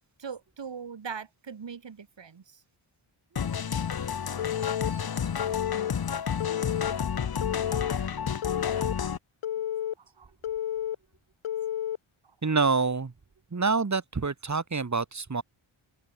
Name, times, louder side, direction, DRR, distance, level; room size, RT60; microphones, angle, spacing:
voice 1, 0.2-2.6 10.0-10.3 12.2-12.4, right 6 dB, 60° right, 6.8 m, -41 dB
sound 1, 3.4-9.2, left 7 dB, 45° left, 1.2 m, -30 dB
Telephone, 4.4-4.9 5.4-5.9 6.4-6.9 7.4-7.9 8.4-8.9 9.4-9.9 10.4-10.9 11.4-12.0, left 10 dB, 75° left, 1.0 m, -31 dB
voice 2, 12.4-13.1 13.5-15.4, right 4 dB, 35° right, 3.5 m, -27 dB
open air
wide cardioid pair, 125°, 49 cm